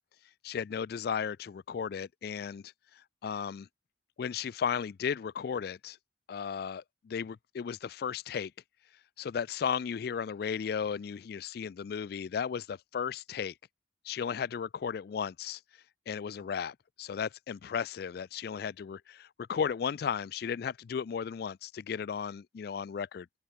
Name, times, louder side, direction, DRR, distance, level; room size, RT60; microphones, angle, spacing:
voice 1, 0.4-3.7 4.2-6.0 6.3-8.5 9.2-13.5 14.0-15.6 16.1-23.3, left 7 dB, 60° left, 0.3 m, -35 dB
head